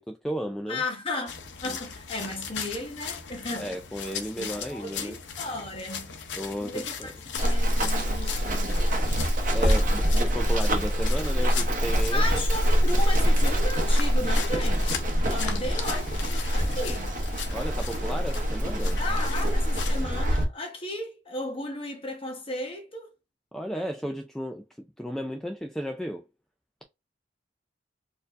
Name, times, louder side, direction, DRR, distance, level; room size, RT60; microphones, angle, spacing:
voice 1, 0.0-0.8 1.6-1.8 3.6-5.2 6.3-7.1 9.5-12.2 17.5-19.0 23.5-26.2, equal, 5° left, 0.3 m, -34 dB
voice 2, 0.7-3.7 4.4-6.1 6.6-7.1 7.4-9.2 12.1-17.2 19.0-23.1, left 1 dB, 30° left, 1.0 m, -35 dB
sound 1, 1.3-20.0, left 6 dB, 85° left, 0.6 m, -38 dB
Run, 7.4-20.4, equal, 50° right, 0.8 m, -24 dB
4.3 x 2.6 x 2.5 m
head